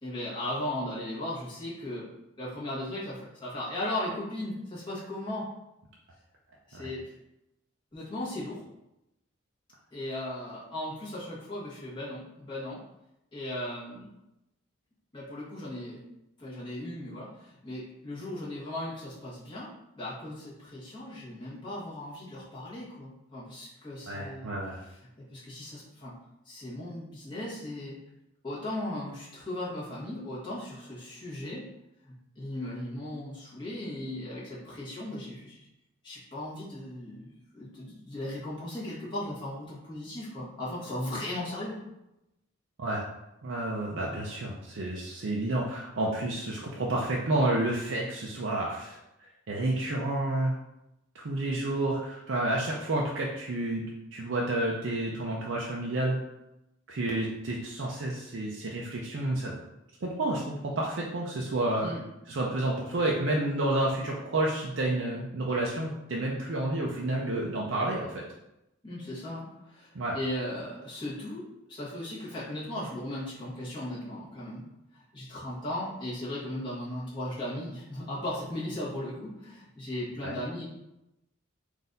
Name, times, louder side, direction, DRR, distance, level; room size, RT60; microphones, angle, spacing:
voice 1, 0.0-2.1 2.4-5.5 6.7-7.1 7.9-8.6 9.9-12.8 13.3-14.1 15.1-16.0 16.4-19.7 19.9-24.5 25.2-26.1 26.4-28.0 28.4-31.7 32.0-35.7 36.0-41.9 61.8-62.0 68.8-71.4 71.7-74.6 74.9-80.7, left 1 dB, 20° left, -8 dB, 1.4 m, -37 dB
voice 2, 24.1-24.8 42.8-43.0 43.4-49.0 49.5-50.5 51.1-53.8 54.1-56.2 56.9-59.5 60.0-61.9 62.3-68.2 69.9-70.2 80.2-80.4, right 1 dB, 60° right, -3 dB, 0.5 m, -30 dB
4.0 x 2.6 x 3.9 m, 0.90 s
head